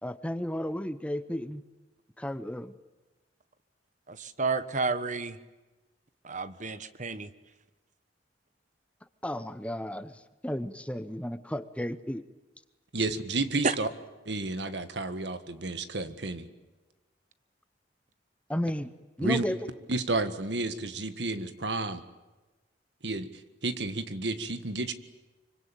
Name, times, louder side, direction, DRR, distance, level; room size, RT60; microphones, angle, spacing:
voice 1, 0.0-1.6 2.2-2.7 9.2-12.2 13.0-13.1 18.5-18.9 19.2-19.6, equal, 5° left, 12 dB, 0.8 m, -33 dB
voice 2, 4.1-5.4 6.2-7.3 13.6-13.8, right 4 dB, 45° right, 13 dB, 1.4 m, -30 dB
voice 3, 12.9-13.9 14.3-16.5 19.2-19.5 19.9-22.0 23.0-24.9, right 2 dB, 70° right, 10 dB, 1.8 m, -31 dB
25.5 x 24.5 x 9.1 m, 1.1 s
head